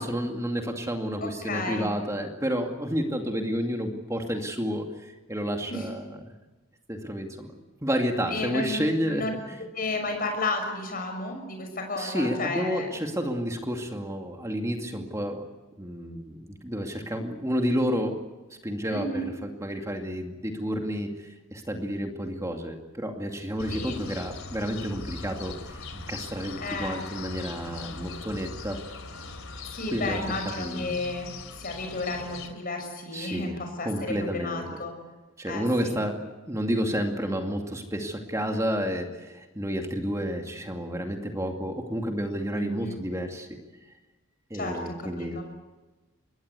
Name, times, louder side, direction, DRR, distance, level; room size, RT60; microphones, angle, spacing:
voice 1, 0.0-6.3 6.9-7.5 7.8-9.6 12.0-15.5 15.8-18.2 18.6-28.8 29.9-30.2 30.6-30.9 33.1-33.6 33.8-34.6 35.4-43.5 44.5-45.4, equal, 15° right, 3 dB, 2.3 m, -30 dB
voice 2, 1.2-1.9 5.7-5.9 8.3-12.9 18.9-19.3 23.7-24.0 26.6-27.0 29.7-31.3 31.6-34.9 35.5-35.9 42.6-43.0 44.5-45.4, left 2 dB, 40° left, 4 dB, 6.3 m, -32 dB
sound 1, 23.6-32.5, left 4 dB, 70° left, 3.1 m, -40 dB
25.5 x 21.0 x 8.3 m, 1.2 s
head